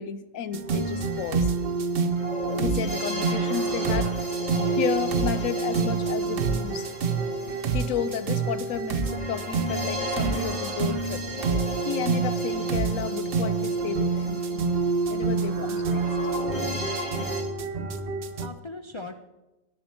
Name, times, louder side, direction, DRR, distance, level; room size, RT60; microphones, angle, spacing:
voice 1, 0.0-1.5 2.5-6.9 7.7-11.2 11.9-14.7 15.1-16.1, left 9 dB, 80° left, 14 dB, 1.0 m, -33 dB
sound 1, 0.5-18.5, right 4 dB, 55° right, 0.8 m, -27 dB
sound 2, 0.7-17.4, equal, 35° left, 2.3 m, -36 dB
voice 2, 17.8-19.2, left 2 dB, 50° left, 5 dB, 0.3 m, -41 dB
11.0 x 7.2 x 6.9 m, 1.0 s
omnidirectional pair, 1.4 m